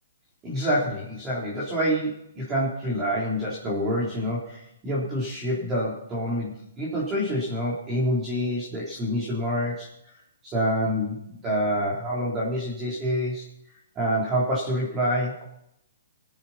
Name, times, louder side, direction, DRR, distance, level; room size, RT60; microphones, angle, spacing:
voice 1, 0.4-9.9 10.4-13.4 14.0-15.4, equal, 15° right, -6 dB, 3.6 m, -27 dB
20.0 x 10.0 x 4.3 m, 0.73 s
hypercardioid pair, 170°, 0 cm